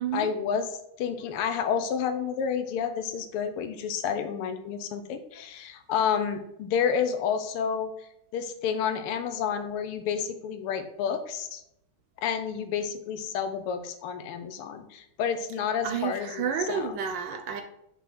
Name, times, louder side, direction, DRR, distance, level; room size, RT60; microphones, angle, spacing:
voice 1, 0.1-0.7 1.0-7.9 8.3-11.6 12.2-16.4 16.7-16.9, left 7 dB, 90° left, 9 dB, 1.6 m, -30 dB
voice 2, 15.8-17.6, right 7 dB, 70° right, 7 dB, 1.2 m, -30 dB
6.0 x 3.5 x 5.9 m, 0.79 s
omnidirectional pair, 2.3 m